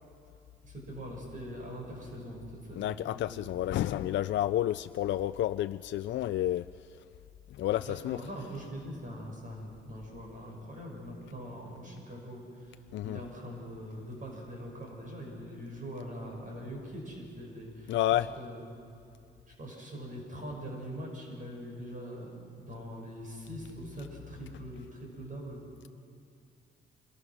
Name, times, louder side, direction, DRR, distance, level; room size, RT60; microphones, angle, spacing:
voice 1, 0.6-3.9 7.7-18.6 19.5-22.3 22.6-25.6, equal, 40° right, -1 dB, 6.9 m, -43 dB
voice 2, 2.8-6.7 7.6-8.2 12.9-13.2 17.9-18.3, left 13 dB, 65° left, 11 dB, 0.5 m, -30 dB
27.5 x 21.5 x 6.3 m, 2.4 s
cardioid pair, 90°, 20 cm